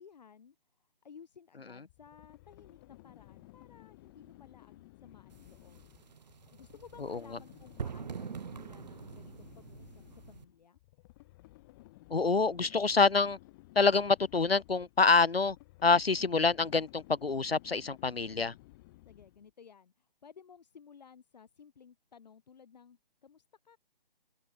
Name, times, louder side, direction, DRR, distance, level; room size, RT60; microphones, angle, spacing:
voice 1, 0.0-5.9 6.1-10.8 19.1-23.8, left 7 dB, 45° left, 7.1 m, -57 dB
sound 1, 1.9-19.5, left 20 dB, 20° left, 7.7 m, -56 dB
sound 2, 5.3-10.4, right 6 dB, 45° right, 1.5 m, -45 dB
voice 2, 12.1-13.4 13.8-15.6 15.8-18.5, left 4 dB, 90° left, 0.9 m, -26 dB
open air
figure-of-eight pair, 145°, 29 cm